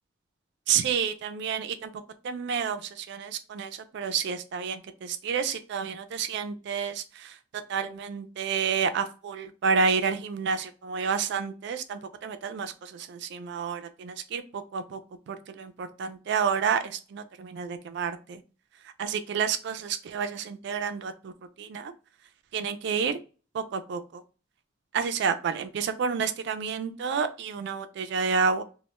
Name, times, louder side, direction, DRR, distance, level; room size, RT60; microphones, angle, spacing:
voice 1, 0.7-1.9 2.2-7.4 7.7-15.0 15.3-18.4 19.0-21.3 21.6-21.9 22.5-23.2 23.5-24.2 24.9-28.6, right 6 dB, 65° right, 9 dB, 0.3 m, -30 dB
2.1 x 2.1 x 2.9 m, 0.34 s
head